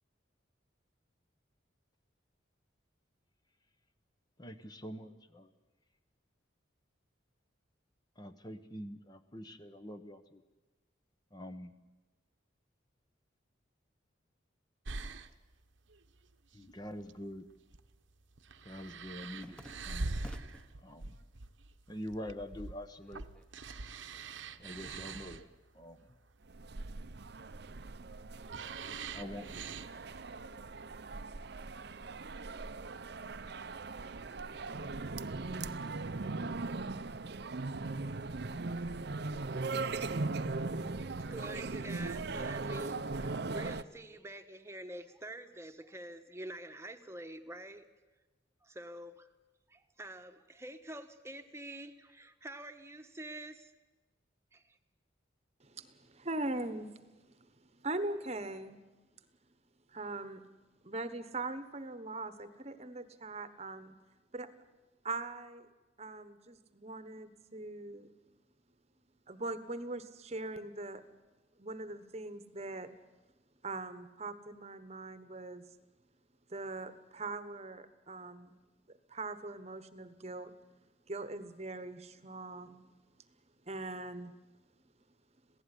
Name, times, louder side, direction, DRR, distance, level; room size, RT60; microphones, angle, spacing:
voice 1, 4.4-5.5 8.2-10.4 11.3-11.7 16.5-17.5 18.6-19.6 19.9-20.2 20.8-21.1 21.9-23.2 24.6-25.5 25.7-26.0 29.1-29.7, equal, 20° left, 9 dB, 1.0 m, -45 dB
sound 1, 14.9-31.1, right 3 dB, 75° right, 1.1 m, -44 dB
sound 2, 17.4-17.7 18.0-20.8 21.2-21.9 22.2-23.9, equal, 5° left, 1.2 m, -55 dB
sound 3, 26.5-43.8, right 3 dB, 55° right, 0.7 m, -39 dB
voice 2, 41.3-47.9 48.6-49.3 49.7-53.7 54.5-54.8, right 1 dB, 15° right, 8 dB, 1.3 m, -47 dB
voice 3, 55.6-58.8 59.9-60.4 60.8-63.9 64.3-64.5 65.0-65.7 66.0-68.1 69.3-71.0 71.6-72.9 73.6-75.6 76.5-78.5 78.9-80.5 81.1-82.9 83.7-84.3, right 2 dB, 35° right, 11 dB, 1.2 m, -41 dB
27.0 x 17.0 x 9.9 m, 1.2 s
head